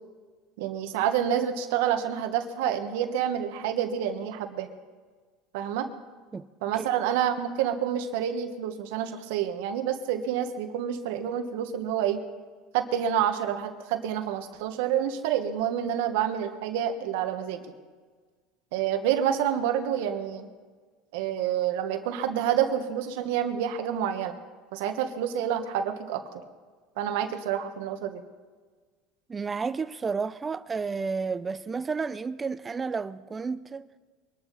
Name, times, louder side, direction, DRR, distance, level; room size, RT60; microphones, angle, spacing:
voice 1, 0.6-4.7 5.5-5.9 6.6-12.2 12.7-17.7 18.7-20.5 21.1-24.4 24.7-26.2 27.0-28.2, right 9 dB, 80° right, 1.4 m, -28 dB
voice 2, 29.3-33.9, right 5 dB, 20° right, 0.6 m, -31 dB
23.5 x 12.0 x 4.2 m
supercardioid pair, 120°, 0 cm